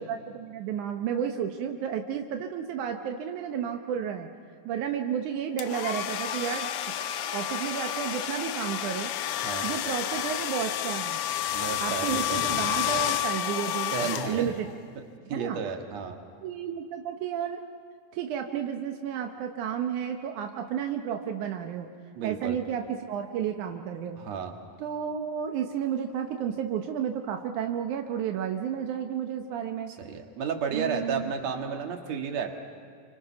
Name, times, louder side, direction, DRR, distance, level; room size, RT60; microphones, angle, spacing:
voice 1, 0.1-4.3 4.7-6.7 7.3-9.1 9.6-11.2 11.8-14.7 15.3-15.6 16.4-17.6 18.1-21.9 22.2-24.2 24.8-29.9 30.7-31.3, right 8 dB, 85° right, 4 dB, 2.5 m, -32 dB
sound 1, 5.6-14.7, left 11 dB, 75° left, 1.3 m, -30 dB
voice 2, 11.5-12.4 13.9-14.5 15.0-15.1 15.3-16.2 22.2-22.6 24.2-24.5 30.0-32.5, right 6 dB, 65° right, 4 dB, 2.9 m, -32 dB
28.5 x 25.0 x 5.8 m, 2.2 s
omnidirectional pair, 3.4 m